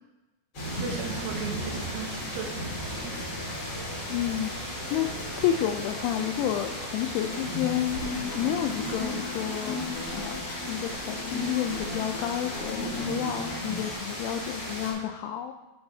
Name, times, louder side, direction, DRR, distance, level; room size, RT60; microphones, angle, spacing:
sound 1, 0.5-14.9, equal, 40° left, 2.0 m, -35 dB
voice 1, 0.8-2.6 2.9-3.1, right 6 dB, 75° right, 1 dB, 3.2 m, -36 dB
voice 2, 4.1-4.5 4.9-5.1 5.4-8.0 8.3-9.8 10.1-15.5, left 11 dB, 90° left, 6 dB, 2.7 m, -30 dB
sound 2, 7.2-13.9, left 2 dB, 70° left, 4.3 m, -36 dB
11.0 x 7.8 x 2.7 m, 1.0 s
omnidirectional pair, 6.0 m